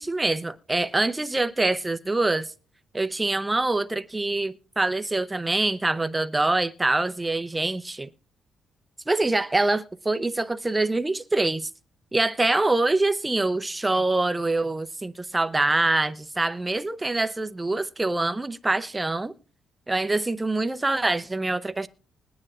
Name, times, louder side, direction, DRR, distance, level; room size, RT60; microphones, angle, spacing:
voice 1, 0.0-2.5 2.9-8.1 9.1-11.7 12.1-19.3 19.9-21.9, right 2 dB, 15° right, 0.7 m, -25 dB
21.0 x 9.8 x 2.4 m
cardioid pair, 125°, 0 cm